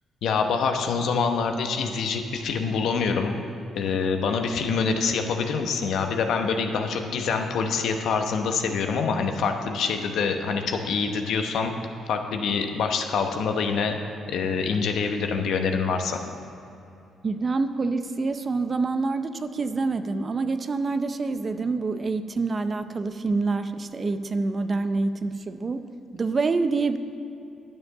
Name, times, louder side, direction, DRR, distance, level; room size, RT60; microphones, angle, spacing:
voice 1, 0.2-3.4 3.7-11.7 12.1-14.0 14.3-16.2, left 5 dB, 75° left, 5 dB, 1.0 m, -25 dB
voice 2, 17.2-25.8 26.1-27.0, right 3 dB, 35° right, 10 dB, 0.6 m, -26 dB
10.5 x 7.0 x 6.6 m, 2.7 s
cardioid pair, 90°, 0 cm